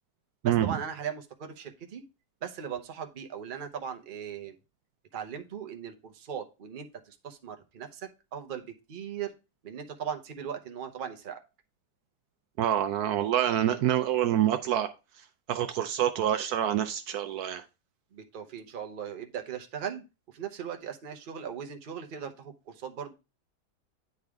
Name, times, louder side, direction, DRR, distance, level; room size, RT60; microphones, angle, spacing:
voice 1, 0.4-2.0 2.4-4.6 5.1-9.3 9.6-11.4 18.1-23.1, right 8 dB, 40° right, 6 dB, 0.8 m, -38 dB
voice 2, 12.6-14.9 15.5-17.6, right 11 dB, 75° right, 9 dB, 1.0 m, -26 dB
9.6 x 3.2 x 3.5 m, 0.28 s
omnidirectional pair, 1.8 m